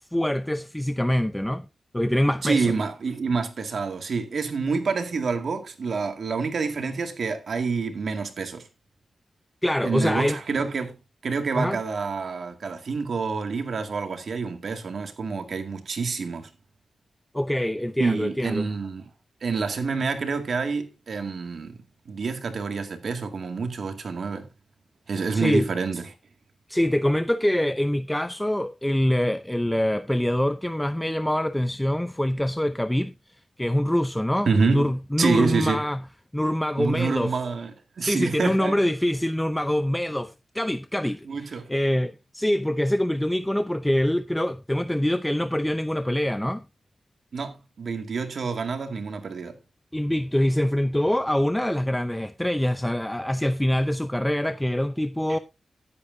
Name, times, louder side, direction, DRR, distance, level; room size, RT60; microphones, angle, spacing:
voice 1, 0.1-1.7 1.9-2.7 9.6-10.4 11.6-11.8 17.3-18.7 25.3-25.7 26.7-33.1 33.6-36.0 36.3-37.3 38.0-46.6 49.9-55.4, left 1 dB, 10° left, 0.6 m, -24 dB
voice 2, 2.4-8.7 9.8-11.0 11.2-16.5 18.0-19.1 19.4-21.8 22.1-24.5 25.1-26.1 34.5-34.9 35.2-35.9 36.8-38.8 41.3-41.7 47.3-49.6, right 4 dB, 70° right, 2.2 m, -27 dB
15.0 x 8.5 x 2.7 m
cardioid pair, 70°, 0 cm